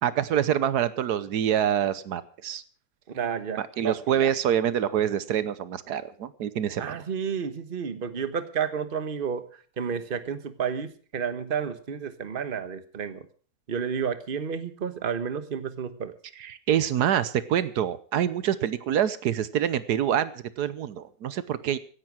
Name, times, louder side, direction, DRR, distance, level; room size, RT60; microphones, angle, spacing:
voice 1, 0.0-2.6 3.6-7.0 16.4-21.8, right 9 dB, 85° right, 15 dB, 1.4 m, -26 dB
voice 2, 3.1-4.3 6.8-9.5 9.8-13.3 13.7-16.1, right 7 dB, 35° right, 11 dB, 1.3 m, -31 dB
17.0 x 10.5 x 6.2 m, 0.43 s
omnidirectional pair, 1.7 m